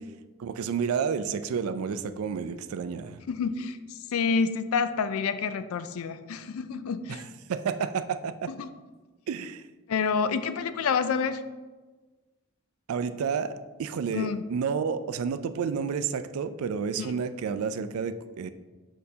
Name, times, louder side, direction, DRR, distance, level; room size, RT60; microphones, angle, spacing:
voice 1, 0.4-3.2 7.1-7.2 7.5-8.5 9.3-9.7 12.9-18.5, right 6 dB, 75° right, 12 dB, 0.4 m, -30 dB
voice 2, 3.3-7.2 8.6-8.7 9.9-11.4 14.1-14.4 17.0-17.1, left 5 dB, 70° left, 11 dB, 0.4 m, -28 dB
6.5 x 5.5 x 2.7 m, 1.3 s
head